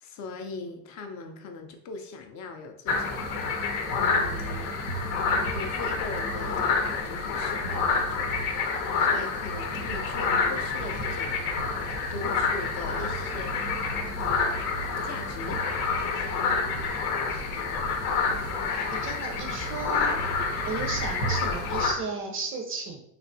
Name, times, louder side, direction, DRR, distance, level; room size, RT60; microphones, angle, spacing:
voice 1, 0.0-3.4 4.0-4.8 5.5-8.4 9.0-11.5 12.1-13.5 15.0-15.6, left 3 dB, 45° left, 5 dB, 0.5 m, -40 dB
sound 1, 2.9-21.9, left 4 dB, 85° left, 0.8 m, -28 dB
voice 2, 18.9-20.2 20.7-23.0, right 4 dB, 30° right, 4 dB, 0.4 m, -34 dB
3.3 x 2.8 x 2.6 m, 0.76 s
supercardioid pair, 125°, 42 cm